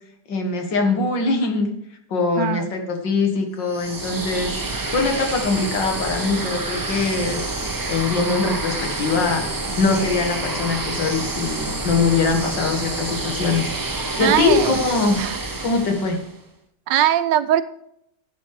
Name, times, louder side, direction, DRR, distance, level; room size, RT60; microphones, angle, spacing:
voice 1, 0.3-1.7 2.1-7.4 7.9-9.5 9.8-13.7 14.2-15.2 15.6-16.2, left 4 dB, 85° left, 4 dB, 2.4 m, -22 dB
voice 2, 2.4-2.7 14.2-14.7 15.2-15.4 16.9-17.6, right 11 dB, 85° right, 13 dB, 1.4 m, -20 dB
sound 1, 3.7-16.3, right 2 dB, 30° right, 0.3 m, -28 dB
11.0 x 8.2 x 4.8 m, 0.77 s
omnidirectional pair, 1.9 m